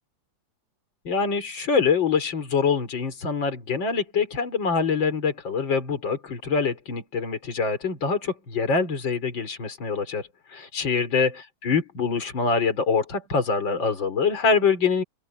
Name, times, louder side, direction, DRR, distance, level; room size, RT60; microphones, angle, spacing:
voice 1, 1.0-10.2 10.5-11.4 11.6-15.0, left 5 dB, 40° left, 4.9 m, -24 dB
open air
omnidirectional pair, 3.3 m